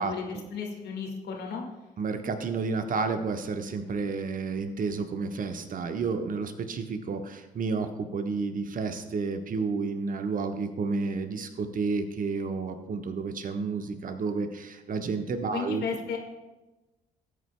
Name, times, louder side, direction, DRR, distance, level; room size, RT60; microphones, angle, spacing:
voice 1, 0.0-0.5 2.0-15.8, right 4 dB, 45° right, 7 dB, 1.1 m, -31 dB
voice 2, 0.5-1.6 15.5-16.2, left 6 dB, 60° left, 2 dB, 1.8 m, -34 dB
18.0 x 8.4 x 2.2 m, 1.1 s
figure-of-eight pair, 45°, 19 cm